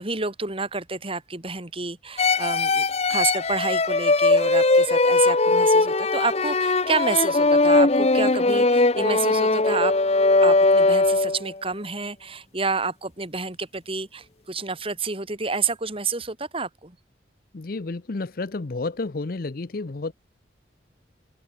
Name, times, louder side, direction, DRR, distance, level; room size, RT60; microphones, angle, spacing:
voice 1, 0.0-9.9 10.4-17.0, right 4 dB, 30° right, 2.7 m, -29 dB
sound 1, 2.2-11.5, left 2 dB, 35° left, 1.1 m, -20 dB
voice 2, 17.5-20.1, left 3 dB, 55° left, 0.7 m, -31 dB
open air
head